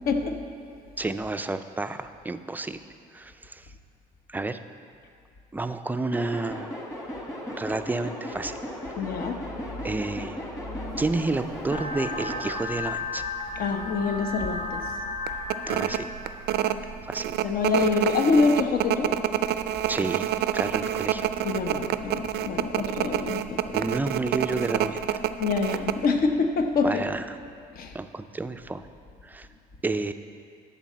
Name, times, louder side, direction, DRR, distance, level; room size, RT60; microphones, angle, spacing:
voice 1, 0.1-0.4 9.0-9.4 10.7-11.0 13.6-14.8 17.4-19.1 21.4-23.6 25.4-27.0 27.8-27.9, left 4 dB, 60° left, 5 dB, 0.9 m, -26 dB
voice 2, 1.0-2.8 3.1-3.7 4.3-4.6 5.5-6.7 7.6-8.6 9.1-9.4 9.8-10.4 11.0-13.3 15.7-16.1 17.1-17.4 19.9-20.3 20.5-21.3 23.7-25.0 26.8-27.4 27.9-28.9 29.2-29.5 29.8-30.1, right 3 dB, 10° right, 9 dB, 0.3 m, -30 dB
sound 1, 6.1-12.5, equal, 15° left, 1.5 m, -37 dB
sound 2, 11.0-11.2 11.8-11.9 12.2-13.1 13.5-13.6 13.9-14.2 14.6-14.7 15.3-26.1, right 11 dB, 75° right, 0.4 m, -27 dB
sound 3, 11.7-16.7, left 3 dB, 90° left, 1.3 m, -34 dB
11.5 x 4.0 x 7.3 m, 2.3 s
cardioid pair, 110°, 17 cm